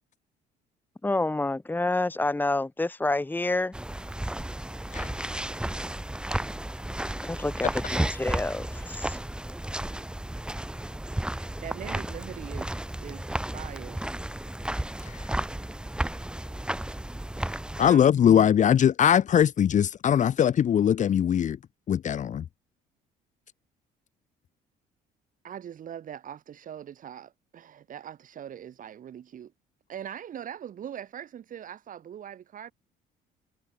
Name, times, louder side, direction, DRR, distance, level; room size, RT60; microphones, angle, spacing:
voice 1, 1.0-3.7 7.2-9.2, left 2 dB, 10° left, 2.7 m, -28 dB
sound 1, 3.7-17.9, right 1 dB, 5° right, 1.4 m, -33 dB
voice 2, 11.3-14.0 17.3-18.2 25.4-29.5 29.9-32.7, right 9 dB, 50° right, 6.5 m, -42 dB
voice 3, 17.8-21.6 21.9-22.4, left 9 dB, 45° left, 1.6 m, -21 dB
cardioid pair, 110°, 17 cm